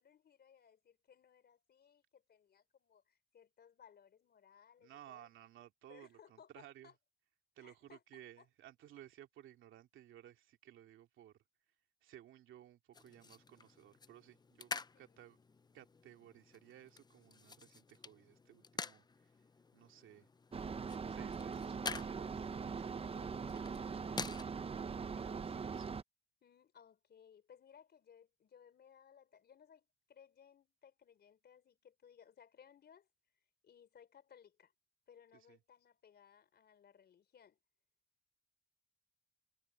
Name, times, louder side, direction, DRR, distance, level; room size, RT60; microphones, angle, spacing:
voice 1, 0.0-5.3 5.9-6.9 7.6-8.5 14.9-15.1 23.1-23.6 26.4-33.1 33.6-34.7 35.1-37.6, left 8 dB, 55° left, 4.3 m, -63 dB
voice 2, 4.8-6.9 7.6-11.4 12.0-15.4 15.7-19.4 19.7-20.3 21.1-23.2 23.7-25.9 35.3-35.6, right 12 dB, 80° right, 2.6 m, -59 dB
sound 1, 12.9-24.4, left 4 dB, 20° left, 0.6 m, -49 dB
sound 2, 20.5-26.0, right 5 dB, 30° right, 0.7 m, -41 dB
cardioid pair, 90°, 20 cm